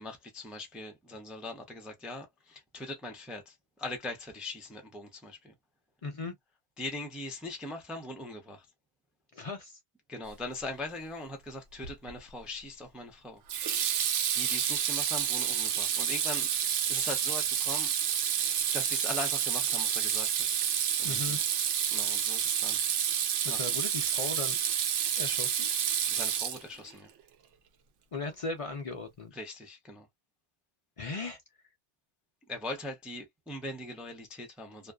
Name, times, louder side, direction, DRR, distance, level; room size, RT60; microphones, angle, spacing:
voice 1, 0.0-5.5 6.8-8.7 10.1-13.4 14.4-17.9 18.7-20.5 21.0-21.4 21.9-22.8 23.5-23.8 26.1-27.1 29.3-30.1 32.5-34.9, left 2 dB, ahead, 0.5 m, -41 dB
voice 2, 6.0-6.4 9.3-9.8 21.0-21.4 23.4-24.6 25.2-25.7 28.1-29.3 31.0-31.4, left 3 dB, 60° left, 0.3 m, -37 dB
Water tap faucet / Sink (filling or washing), 11.8-12.2 13.5-26.9, right 9 dB, 85° right, 0.9 m, -29 dB
2.4 x 2.3 x 2.2 m
omnidirectional pair, 1.2 m